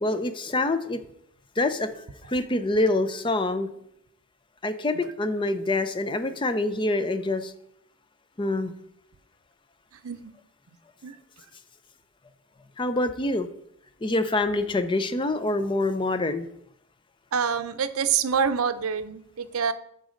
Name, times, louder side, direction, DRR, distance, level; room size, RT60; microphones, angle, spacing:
voice 1, 0.0-1.0 1.6-3.7 4.6-7.5 8.4-8.7 12.8-13.5 14.0-16.5, left 2 dB, 20° left, 11 dB, 0.5 m, -26 dB
voice 2, 17.3-19.7, right 6 dB, 75° right, 11 dB, 0.6 m, -26 dB
8.7 x 4.1 x 6.3 m, 0.74 s
head